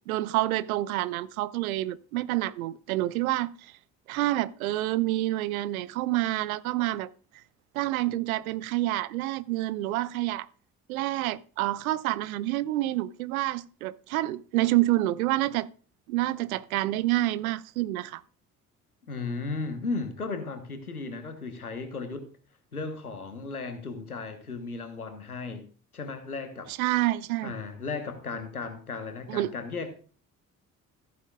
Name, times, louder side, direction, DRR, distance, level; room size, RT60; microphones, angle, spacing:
voice 1, 0.1-3.7 4.1-7.1 7.7-10.5 10.9-15.7 16.1-18.2 26.7-27.5 29.3-29.5, right 16 dB, 75° right, 0.6 m, -28 dB
voice 2, 19.1-22.3 22.7-25.6 25.9-26.8 27.4-29.9, left 4 dB, 90° left, 1.2 m, -35 dB
14.5 x 9.4 x 2.4 m
figure-of-eight pair, 45°, 43 cm